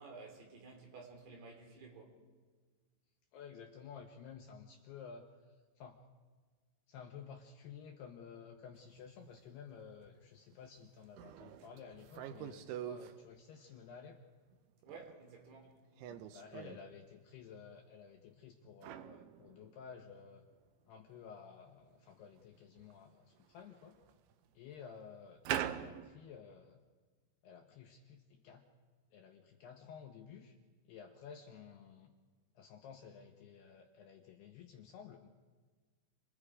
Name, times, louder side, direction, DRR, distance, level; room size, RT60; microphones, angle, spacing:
voice 1, 0.0-2.2 14.8-15.8, right 4 dB, 55° right, 5.2 m, -53 dB
voice 2, 3.3-6.0 6.9-14.2 16.1-20.5 20.8-24.0 24.5-26.8 27.4-28.7 29.1-30.6 30.8-32.1 32.6-35.3, left 7 dB, 70° left, 2.6 m, -53 dB
sound 1, 8.8-8.9 10.0-10.1 10.5-10.6 11.2-13.1 14.5-15.2 16.0-16.8 18.8-20.3 20.5-20.6 22.0-22.1 22.8-22.9 23.4-24.3 25.4-26.1, right 11 dB, 80° right, 3.1 m, -43 dB
28.0 x 22.0 x 5.0 m
omnidirectional pair, 5.8 m